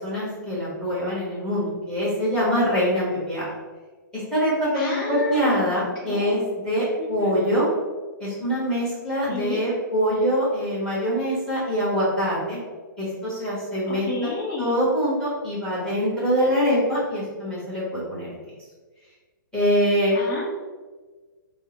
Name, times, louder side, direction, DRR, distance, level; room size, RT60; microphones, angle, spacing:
voice 1, 0.0-3.5 4.1-7.7 8.2-12.6 13.0-14.3 14.6-18.3 19.5-20.1, equal, 5° left, -7 dB, 1.2 m, -24 dB
voice 2, 4.7-5.7 6.0-6.4 7.0-7.3 9.3-9.6 13.9-14.8 20.1-20.4, left 3 dB, 35° left, -7 dB, 1.0 m, -31 dB
3.6 x 2.1 x 4.2 m, 1.4 s
hypercardioid pair, 155°, 11 cm